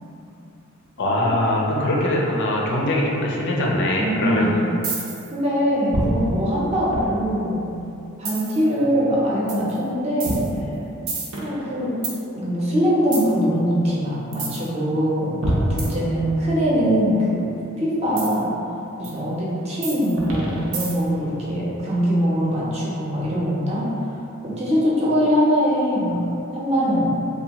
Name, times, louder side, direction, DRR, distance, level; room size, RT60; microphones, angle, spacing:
voice 1, 1.0-4.6, left 1 dB, 60° left, -2 dB, 0.4 m, -22 dB
voice 2, 3.9-4.6 5.3-7.7 8.2-10.4 11.4-12.0 12.3-15.4 15.7-17.5 17.8-18.6 18.9-23.9 24.6-26.2 26.5-27.2, equal, 30° right, -6 dB, 0.6 m, -22 dB
sound 1, 4.8-5.3 5.9-7.5 8.2-8.7 9.5-9.7 10.2-12.2 13.1-13.3 14.3-14.7 15.4-16.6 18.2-18.4 19.0-19.1 19.8-21.2, right 2 dB, 90° right, 0.6 m, -27 dB
2.7 x 2.2 x 2.9 m, 2.8 s
head